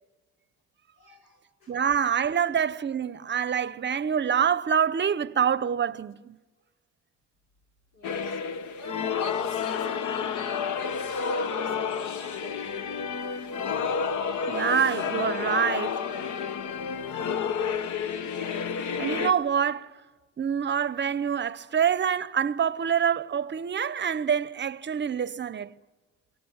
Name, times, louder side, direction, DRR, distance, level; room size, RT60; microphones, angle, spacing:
voice 1, 1.0-1.8 7.9-12.7, equal, 90° left, 3.8 m, -46 dB
voice 2, 1.7-6.4 14.5-16.0 19.0-19.9 20.4-25.7, right 7 dB, 40° right, 0.7 m, -26 dB
sound 1, 8.0-19.3, left 6 dB, 75° left, 1.1 m, -30 dB
28.5 x 18.0 x 7.9 m
cardioid pair, 90°, 30 cm